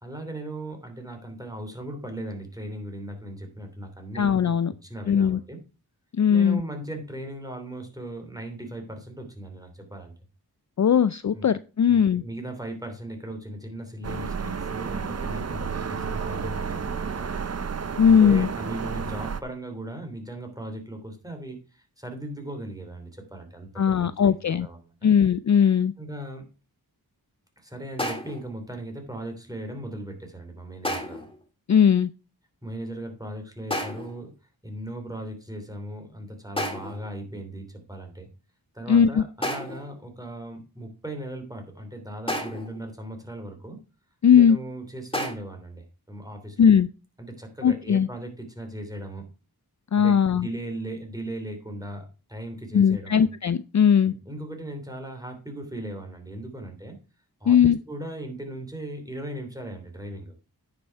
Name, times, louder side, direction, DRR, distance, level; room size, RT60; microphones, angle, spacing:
voice 1, 0.0-4.3 4.8-5.6 6.3-10.1 11.3-11.5 11.9-17.3 18.0-25.1 26.0-26.5 27.6-31.3 32.6-34.3 34.6-38.3 38.7-43.8 44.3-46.6 47.2-49.3 50.0-53.3 54.0-57.0 57.4-60.3, right 1 dB, 10° right, 4 dB, 3.0 m, -38 dB
voice 2, 4.1-4.7 5.1-5.4 6.2-6.6 10.8-12.2 18.0-18.5 23.8-24.7 25.0-25.9 31.7-32.1 38.9-39.2 44.2-44.6 46.6-46.9 47.6-48.1 49.9-50.5 52.7-54.1 57.5-57.8, left 7 dB, 50° left, 15 dB, 0.4 m, -19 dB
sound 1, 14.0-19.4, right 6 dB, 40° right, 0.7 m, -31 dB
sound 2, 28.0-28.5 30.8-31.4 33.7-34.2 36.6-37.1 39.4-39.9 42.3-42.8 45.1-45.3, equal, 15° left, 2.0 m, -31 dB
9.7 x 6.2 x 4.5 m, 0.32 s
wide cardioid pair, 65°, 38 cm